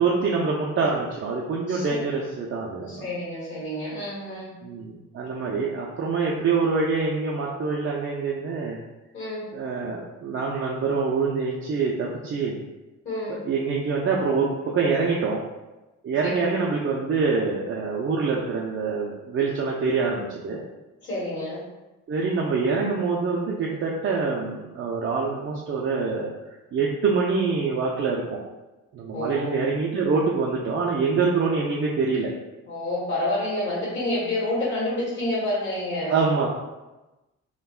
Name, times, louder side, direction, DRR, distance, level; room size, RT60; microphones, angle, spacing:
voice 1, 0.0-3.0 4.6-8.8 9.5-12.6 13.3-15.4 16.0-20.6 22.1-26.3 26.7-28.4 28.9-32.3 36.1-36.5, right 4 dB, 40° right, -3 dB, 0.5 m, -25 dB
voice 2, 1.7-2.0 2.9-4.6 9.1-9.5 13.0-13.4 16.2-16.6 21.0-21.7 29.1-29.7 32.7-36.1, left 1 dB, 40° left, -9 dB, 1.4 m, -29 dB
3.4 x 2.3 x 2.4 m, 1.1 s
cardioid pair, 90°, 30 cm